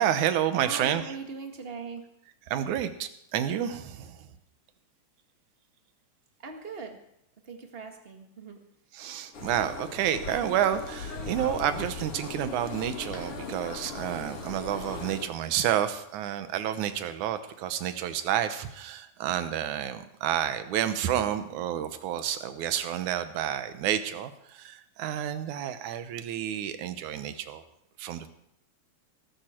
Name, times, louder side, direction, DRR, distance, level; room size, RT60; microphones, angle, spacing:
voice 1, 0.0-1.0 2.5-4.3 8.9-27.6 28.0-28.3, right 10 dB, 80° right, 10 dB, 2.4 m, -30 dB
voice 2, 0.6-2.0 6.4-7.0 7.4-8.6, right 4 dB, 25° right, 4 dB, 1.5 m, -40 dB
sound 1, 9.3-15.2, left 4 dB, 50° left, 2.8 m, -38 dB
sound 2, 13.0-13.3 14.3-14.4 15.6-15.7 17.2-21.6, left 1 dB, 10° left, 4.7 m, -57 dB
20.0 x 13.0 x 4.5 m, 0.77 s
omnidirectional pair, 3.5 m